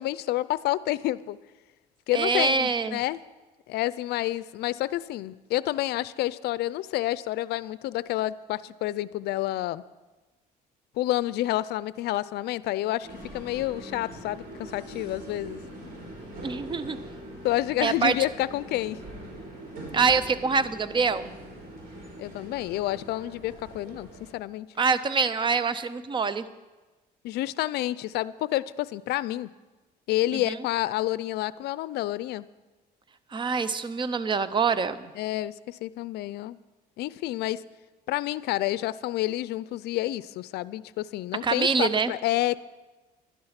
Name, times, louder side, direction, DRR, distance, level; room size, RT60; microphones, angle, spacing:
voice 1, 0.0-1.4 2.1-3.2 3.7-9.8 11.0-15.6 17.4-19.0 22.2-24.7 27.2-29.5 30.1-32.5 35.2-36.6 37.0-37.6 38.1-42.6, left 15 dB, 75° left, 18 dB, 0.4 m, -29 dB
voice 2, 2.1-3.0 16.4-17.0 17.8-18.2 19.9-21.3 24.8-26.5 30.3-30.6 33.3-35.1 41.4-42.1, right 5 dB, 30° right, 14 dB, 0.6 m, -25 dB
sound 1, 13.0-24.3, right 1 dB, 65° right, 4.7 m, -42 dB
11.5 x 11.0 x 5.8 m, 1.2 s
cardioid pair, 110°, 17 cm